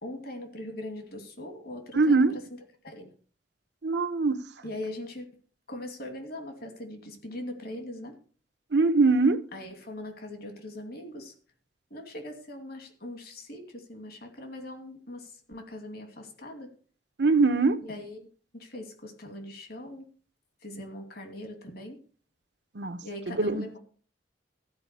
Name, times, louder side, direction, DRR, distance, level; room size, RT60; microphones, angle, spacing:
voice 1, 0.0-2.6 2.8-3.1 4.6-5.3 5.7-8.1 9.5-11.3 11.9-16.7 17.8-18.3 18.5-20.1 20.6-22.0 23.0-23.8, left 1 dB, 60° left, 2.5 m, -41 dB
voice 2, 1.9-2.3 3.8-4.4 8.7-9.4 17.2-17.8 22.7-23.0 23.3-23.7, right 3 dB, 70° right, 0.9 m, -22 dB
15.0 x 5.0 x 8.3 m
head